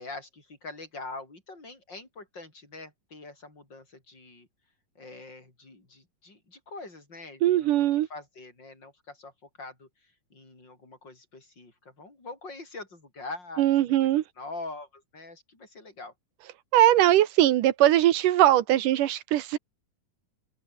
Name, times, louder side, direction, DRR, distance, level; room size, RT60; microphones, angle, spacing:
voice 1, 0.0-4.5 5.0-7.7 8.1-9.3 9.6-13.7 14.0-16.1, left 3 dB, 30° left, 7.7 m, -43 dB
voice 2, 7.4-8.1 13.6-14.2 16.7-19.6, right 13 dB, 70° right, 2.3 m, -21 dB
open air
omnidirectional pair, 4.2 m